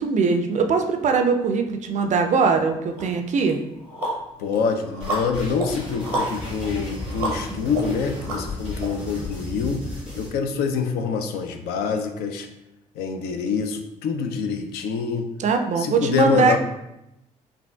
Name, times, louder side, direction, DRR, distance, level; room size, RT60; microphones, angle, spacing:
voice 1, 0.0-3.6 15.4-16.6, right 5 dB, 40° right, 6 dB, 0.4 m, -21 dB
sound 1, 3.0-3.1 3.5-8.9, right 2 dB, 85° right, 0.7 m, -32 dB
voice 2, 4.4-9.9 10.2-12.5 13.0-15.3 15.8-16.6, left 5 dB, 60° left, 6 dB, 0.4 m, -26 dB
sound 2, 5.0-10.3, left 2 dB, 75° left, 1.4 m, -34 dB
5.2 x 2.4 x 2.3 m, 0.86 s
figure-of-eight pair, 45°, 19 cm